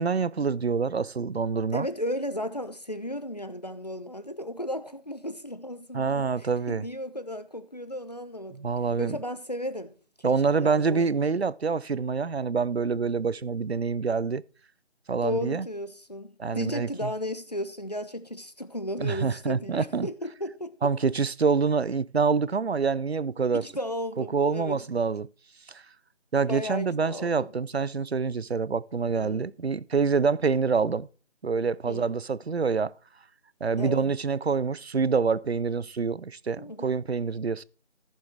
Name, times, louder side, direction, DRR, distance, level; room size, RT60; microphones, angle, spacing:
voice 1, 0.0-1.9 5.9-6.9 8.5-9.2 10.2-14.4 15.1-15.7 16.4-17.1 19.0-20.1 20.8-23.6 24.2-25.3 25.7-25.8 26.3-31.1 31.4-32.9 33.6-37.6, right 5 dB, 60° right, 0.5 m, -26 dB
voice 2, 1.7-8.6 9.0-9.9 10.2-11.1 15.2-20.9 23.5-24.8 26.5-27.5 29.1-29.5 31.9-32.1 33.8-34.1 36.6-37.0, left 1 dB, 35° left, 0.9 m, -35 dB
14.5 x 6.8 x 4.7 m
figure-of-eight pair, 170°, 35 cm